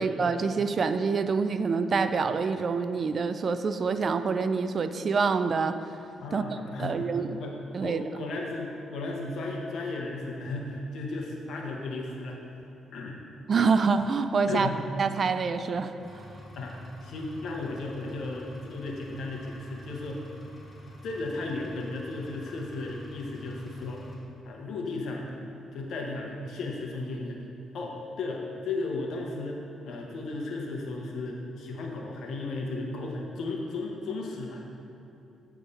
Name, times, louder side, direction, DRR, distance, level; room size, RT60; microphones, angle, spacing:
voice 1, 0.0-5.8 6.3-6.4 6.8-7.4 7.7-8.0 13.5-14.7 15.0-15.9, right 5 dB, 45° right, 10 dB, 0.3 m, -26 dB
voice 2, 6.2-7.1 7.4-7.6 7.8-12.4 12.9-13.2 14.5-14.8 16.6-16.8 17.0-20.2 21.0-24.0 24.4-25.4 25.7-34.8, left 2 dB, 70° left, 0 dB, 1.0 m, -35 dB
Engine, 16.0-24.1, left 1 dB, 10° left, 1.6 m, -47 dB
8.4 x 3.6 x 5.3 m, 2.9 s
cardioid pair, 90°, 0 cm